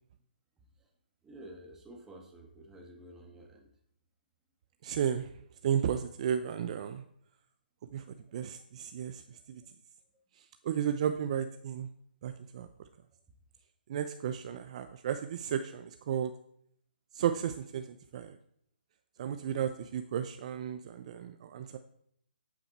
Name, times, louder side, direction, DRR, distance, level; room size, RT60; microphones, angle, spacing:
voice 1, 1.2-3.7 8.2-8.5 9.3-9.7, right 1 dB, 10° right, 1 dB, 1.9 m, -51 dB
voice 2, 4.8-5.3 5.6-7.0 7.9-8.0 8.3-9.2 9.5-9.6 10.6-11.9 12.2-12.7 13.9-16.3 17.1-18.4 19.2-21.8, right 9 dB, 40° right, 8 dB, 0.7 m, -33 dB
13.0 x 8.9 x 4.3 m, 0.69 s
hypercardioid pair, 150°, 5 cm